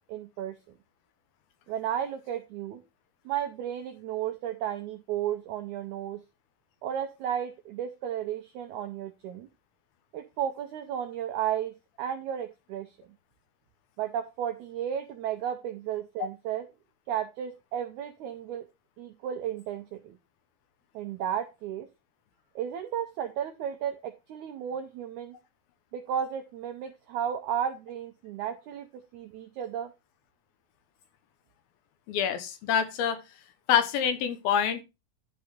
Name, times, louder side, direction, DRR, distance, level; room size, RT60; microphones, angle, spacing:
voice 1, 0.1-0.6 1.7-2.8 3.2-6.2 6.8-9.5 10.1-12.9 14.0-16.6 17.1-18.7 19.0-20.2 20.9-21.9 22.5-25.3 25.9-29.9, right 9 dB, 85° right, 7 dB, 1.7 m, -33 dB
voice 2, 32.1-33.2 33.7-34.8, left 8 dB, 85° left, 9 dB, 2.9 m, -26 dB
11.5 x 4.0 x 5.0 m, 0.26 s
omnidirectional pair, 4.2 m